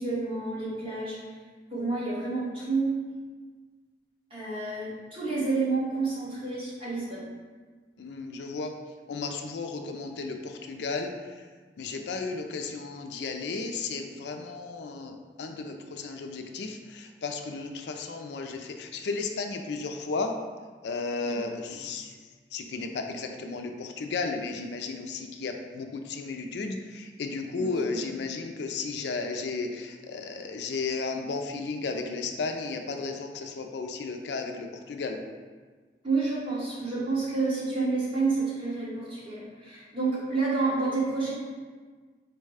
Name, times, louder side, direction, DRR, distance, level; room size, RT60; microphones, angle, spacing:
voice 1, 0.0-1.3 1.7-2.9 4.3-7.3 21.2-21.9 27.6-28.1 36.0-41.3, right 3 dB, 30° right, -9 dB, 1.4 m, -29 dB
voice 2, 8.0-8.7 9.1-11.1 11.8-20.3 20.8-22.1 22.5-35.2, left 4 dB, 80° left, 4 dB, 0.4 m, -34 dB
4.6 x 2.2 x 4.8 m, 1.4 s
head